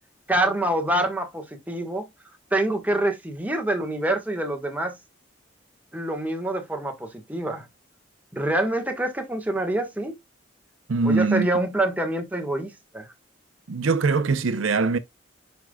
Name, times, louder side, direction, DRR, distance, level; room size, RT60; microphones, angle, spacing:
voice 1, 0.3-2.1 2.5-5.0 5.9-7.7 8.3-10.2 11.0-13.1, right 1 dB, 10° right, 1.4 m, -26 dB
voice 2, 10.9-11.5 13.7-15.0, right 4 dB, 85° right, 0.7 m, -22 dB
9.2 x 5.2 x 2.3 m
head